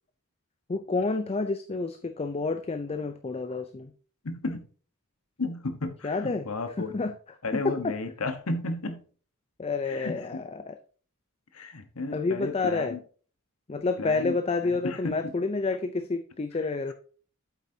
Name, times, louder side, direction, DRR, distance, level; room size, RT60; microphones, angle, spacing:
voice 1, 0.7-3.9 6.0-6.5 6.8-7.1 7.5-7.9 9.6-10.8 12.1-13.0 13.7-16.9, left 3 dB, 30° left, 9 dB, 0.5 m, -29 dB
voice 2, 4.2-4.7 5.4-7.0 7.4-9.1 9.9-10.4 11.5-13.0 14.0-14.3 14.6-15.3, left 2 dB, 80° left, 9 dB, 1.2 m, -33 dB
8.3 x 8.0 x 2.8 m, 0.41 s
head